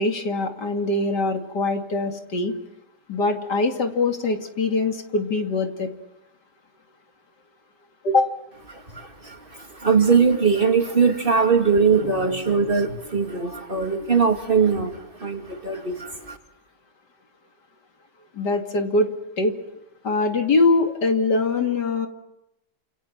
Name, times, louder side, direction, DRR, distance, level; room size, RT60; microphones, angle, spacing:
voice 1, 0.0-2.6 3.1-5.9 8.0-8.3 18.3-19.1 19.4-19.5 20.0-22.1, left 3 dB, 75° left, 4 dB, 3.0 m, -22 dB
voice 2, 8.7-16.4, right 5 dB, 30° right, 4 dB, 2.8 m, -21 dB
29.5 x 27.5 x 6.0 m, 0.86 s
omnidirectional pair, 1.8 m